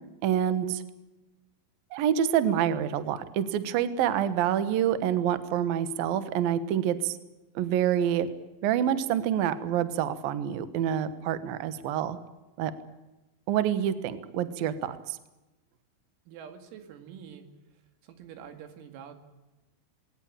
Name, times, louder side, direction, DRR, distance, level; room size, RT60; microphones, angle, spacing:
voice 1, 0.2-0.8 1.9-7.2 7.6-8.3 8.6-12.2 12.6-12.7 13.5-15.2, right 10 dB, 70° right, 13 dB, 2.3 m, -27 dB
voice 2, 16.3-17.5 18.0-19.1, right 8 dB, 90° right, 8 dB, 5.0 m, -46 dB
20.5 x 19.0 x 8.8 m, 1.0 s
omnidirectional pair, 5.9 m